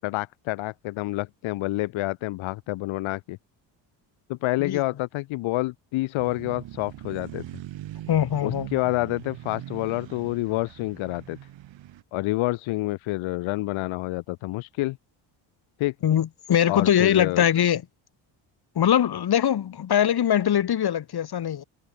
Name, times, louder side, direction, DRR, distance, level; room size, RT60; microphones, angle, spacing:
voice 1, 0.0-3.4 4.3-7.4 8.4-11.4 12.1-15.0 15.8-15.9 16.7-17.4, left 19 dB, 85° left, 1.5 m, -28 dB
sound 1, 6.2-12.0, right 13 dB, 75° right, 3.8 m, -41 dB
voice 2, 8.1-8.7 16.0-17.8 18.8-21.6, left 10 dB, 55° left, 2.2 m, -22 dB
cardioid pair, 85°, 46 cm